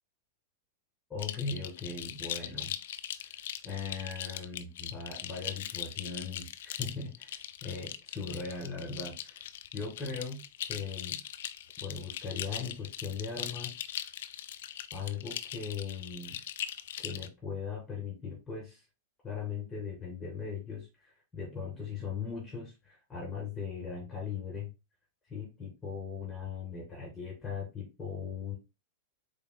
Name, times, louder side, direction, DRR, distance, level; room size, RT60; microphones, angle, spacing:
voice 1, 1.1-2.7 3.6-9.5 9.7-11.2 11.8-13.8 14.9-16.4 17.0-18.8 19.2-24.7 25.3-28.6, left 5 dB, 15° left, -3 dB, 2.1 m, -39 dB
sound 1, 1.2-17.3, left 11 dB, 60° left, 0.4 m, -40 dB
7.7 x 3.1 x 2.2 m, 0.26 s
figure-of-eight pair, 95°, 0 cm